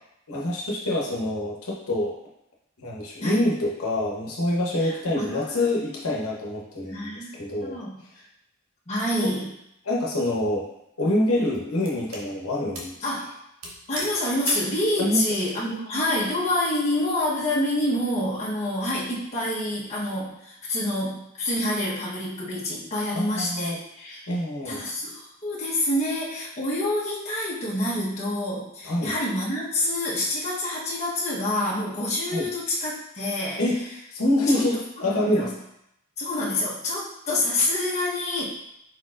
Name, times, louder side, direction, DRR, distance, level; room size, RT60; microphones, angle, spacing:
voice 1, 0.3-2.2 2.8-7.8 9.8-10.7 11.0-13.0 15.0-15.3 23.1-23.8 24.3-24.8 28.8-29.1 32.3-32.5 33.6-33.8 34.1-35.5, left 1 dB, 85° left, -3 dB, 1.0 m, -26 dB
voice 2, 6.8-7.3 7.6-8.0 8.9-9.5 13.0-13.3 13.9-24.3 24.6-33.6 34.5-34.6 35.1-35.5 36.2-38.5, left 1 dB, 30° left, -6 dB, 1.1 m, -27 dB
sound 1, 10.0-10.4 11.1-12.3 12.7-13.0 13.3-13.4 13.6-14.8, right 1 dB, 65° right, 0.9 m, -36 dB
4.4 x 4.4 x 2.5 m, 0.80 s
head